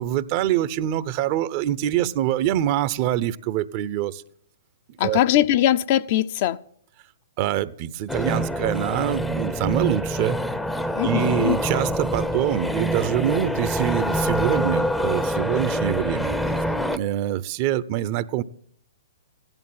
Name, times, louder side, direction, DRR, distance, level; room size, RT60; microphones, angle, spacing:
voice 1, 0.0-4.2 5.0-5.2 7.4-10.4 11.0-16.3 16.9-18.4, right 12 dB, 40° right, 0.8 m, -25 dB
voice 2, 5.0-6.6 10.9-11.6, left 12 dB, 45° left, 0.7 m, -21 dB
sound 1, 8.1-17.0, equal, 5° left, 0.7 m, -26 dB
16.0 x 11.0 x 7.5 m
figure-of-eight pair, 115°, 0 cm